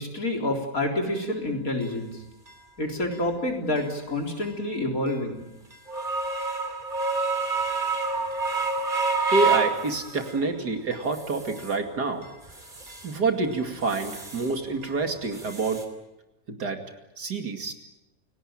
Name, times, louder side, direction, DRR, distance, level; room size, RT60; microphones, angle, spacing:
voice 1, 0.0-2.2 2.8-5.4, left 1 dB, 55° left, 2 dB, 4.2 m, -28 dB
sound 1, 1.2-1.3 1.8-1.9 2.5-2.6 3.1-3.3 3.8-3.9 4.4-4.6 5.1-5.2 5.7-10.5 10.9-11.8 12.2-13.1 13.5-14.6 14.8-15.8, right 4 dB, 30° right, 3.2 m, -29 dB
voice 2, 9.3-12.2 13.0-15.8 16.5-16.8 17.2-17.7, right 3 dB, 70° right, 5 dB, 3.0 m, -27 dB
29.0 x 18.5 x 8.9 m, 0.94 s
omnidirectional pair, 1.8 m